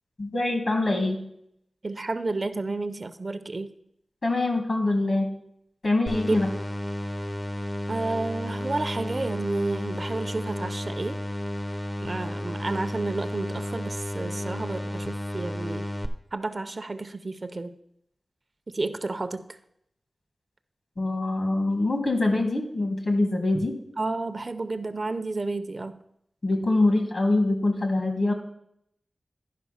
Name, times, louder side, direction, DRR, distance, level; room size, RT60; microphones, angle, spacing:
voice 1, 0.2-1.2 4.2-5.3 5.8-6.5 21.0-23.8 26.4-28.3, left 2 dB, 55° left, 4 dB, 1.8 m, -24 dB
voice 2, 1.8-3.7 6.3-6.4 7.9-11.2 12.0-15.9 16.3-17.7 18.7-19.6 23.5-23.6 24.0-26.0, right 3 dB, 45° right, 11 dB, 0.6 m, -31 dB
sound 1, 6.1-16.1, left 1 dB, 30° left, 0.7 m, -32 dB
11.0 x 5.1 x 5.7 m, 0.76 s
wide cardioid pair, 75°, 0 cm